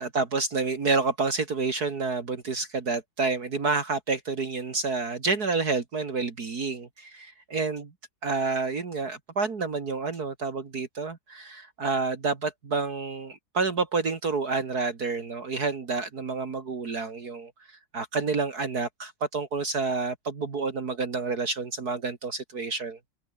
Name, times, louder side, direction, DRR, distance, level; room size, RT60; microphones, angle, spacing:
voice 1, 0.0-7.9 8.2-17.5 17.9-23.0, right 4 dB, 55° right, 2.7 m, -29 dB
omnidirectional pair, 2.1 m